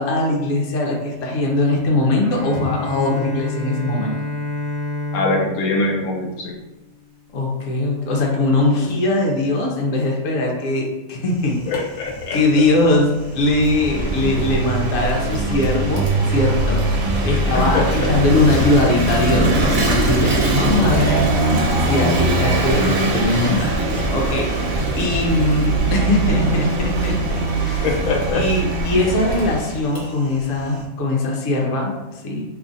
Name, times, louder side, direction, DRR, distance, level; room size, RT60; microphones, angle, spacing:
voice 1, 0.0-4.1 7.3-11.6 12.3-16.8 17.2-27.9 28.3-32.4, left 2 dB, 70° left, -1 dB, 1.0 m, -21 dB
Bowed string instrument, 2.2-7.1, left 1 dB, 45° right, 1.0 m, -29 dB
voice 2, 5.1-6.5 11.7-12.4 17.5-18.1 18.4-18.6 27.8-28.4, left 3 dB, 90° left, -1 dB, 1.1 m, -23 dB
Typing, 11.2-30.8, left 1 dB, 45° left, 0.7 m, -37 dB
Vehicle / Engine, 13.2-29.9, right 2 dB, 80° right, 1.1 m, -21 dB
2.8 x 2.4 x 3.9 m, 1.1 s
omnidirectional pair, 1.5 m